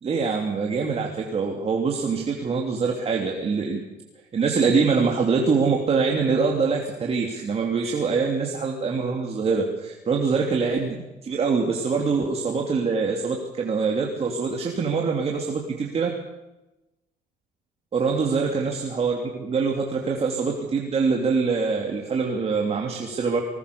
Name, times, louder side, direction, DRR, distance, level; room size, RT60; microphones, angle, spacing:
voice 1, 0.0-3.8 4.3-16.1 17.9-23.4, right 5 dB, 35° right, 0 dB, 3.0 m, -24 dB
20.5 x 19.0 x 7.0 m, 1.0 s
cardioid pair, 110°, 17 cm